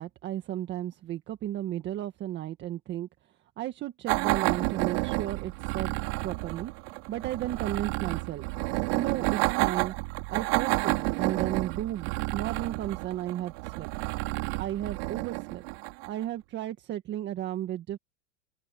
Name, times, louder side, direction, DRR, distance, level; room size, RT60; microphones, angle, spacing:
voice 1, 0.0-3.1 3.6-6.7 7.1-8.5 9.0-9.9 10.3-13.9 14.6-15.6 16.1-18.0, right 12 dB, 25° right, 1.8 m, -34 dB
sound 1, 4.1-16.2, right 28 dB, 50° right, 5.6 m, -30 dB
open air
supercardioid pair, 145°, 40 cm